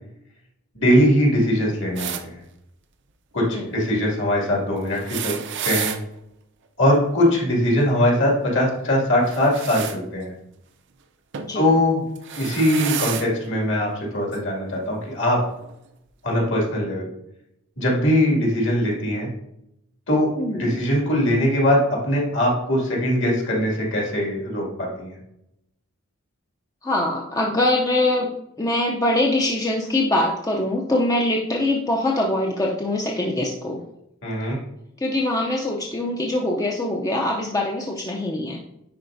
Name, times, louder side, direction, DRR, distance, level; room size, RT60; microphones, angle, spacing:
voice 1, 0.7-2.4 3.3-5.4 5.6-5.9 6.8-10.3 11.5-12.0 12.3-15.4 16.2-17.1 17.8-19.3 20.1-25.2 34.2-34.6, equal, 60° left, -3 dB, 2.3 m, -21 dB
sound 1, 2.0-2.2 4.9-6.0 9.2-10.0 11.3-11.5 12.2-13.3 14.3-14.4 15.6-15.7, right 9 dB, 55° right, 0.5 m, -30 dB
voice 2, 11.4-11.8 20.4-20.8 26.8-28.3 28.6-33.8 35.0-38.6, left 1 dB, 15° left, -1 dB, 0.5 m, -23 dB
10.5 x 4.1 x 2.6 m, 0.82 s
head